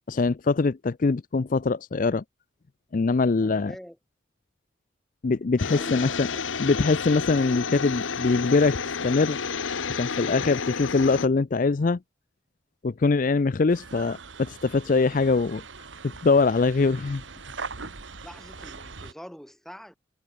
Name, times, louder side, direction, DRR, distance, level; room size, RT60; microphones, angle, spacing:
voice 1, 0.1-2.2 2.9-3.7 5.2-6.3 6.6-9.4 9.9-12.0 12.8-15.6 16.2-17.2, left 4 dB, 45° left, 0.4 m, -23 dB
voice 2, 3.4-4.0 5.7-6.4 18.2-20.0, equal, ahead, 4.5 m, -45 dB
sound 1, 5.6-11.3, left 5 dB, 85° left, 1.0 m, -31 dB
sound 2, 13.7-19.1, right 4 dB, 75° right, 1.8 m, -41 dB
head